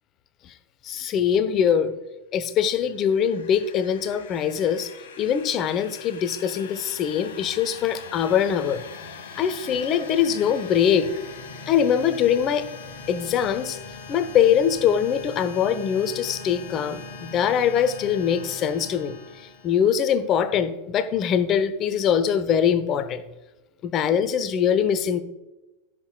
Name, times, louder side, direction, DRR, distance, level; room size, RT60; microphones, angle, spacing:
voice 1, 0.8-1.9 2.3-4.9 5.2-8.8 9.3-11.1 11.7-12.7 13.1-13.8 14.1-19.1 19.6-23.2 23.8-25.2, left 8 dB, 30° left, 12 dB, 0.8 m, -22 dB
sound 1, 2.7-20.3, left 4 dB, 55° left, 1.6 m, -41 dB
15.5 x 7.7 x 2.3 m, 1.0 s
figure-of-eight pair, 90°, 0 cm